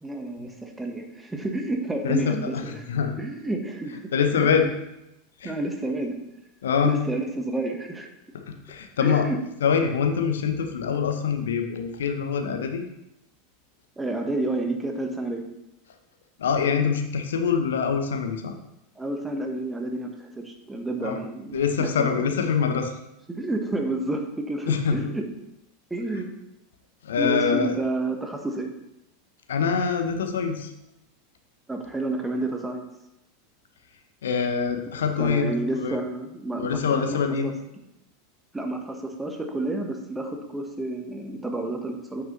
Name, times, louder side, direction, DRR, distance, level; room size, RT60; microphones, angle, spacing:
voice 1, 0.0-2.9 3.2-4.0 4.3-4.6 5.4-6.2 6.8-8.1 9.0-9.4 14.0-15.4 19.0-22.3 23.3-25.3 25.9-26.3 27.2-28.7 31.7-32.9 35.2-37.5 38.5-42.2, right 2 dB, 10° right, 3 dB, 1.3 m, -30 dB
voice 2, 4.1-4.7 5.4-5.5 6.6-6.9 8.5-9.3 9.6-12.8 16.4-18.5 21.0-21.2 21.5-22.9 24.7-24.9 27.0-27.7 29.5-30.7 34.2-35.5 35.8-36.0 36.6-37.5, left 6 dB, 70° left, 5 dB, 0.9 m, -24 dB
8.8 x 6.1 x 3.2 m, 0.88 s
figure-of-eight pair, 85°, 0 cm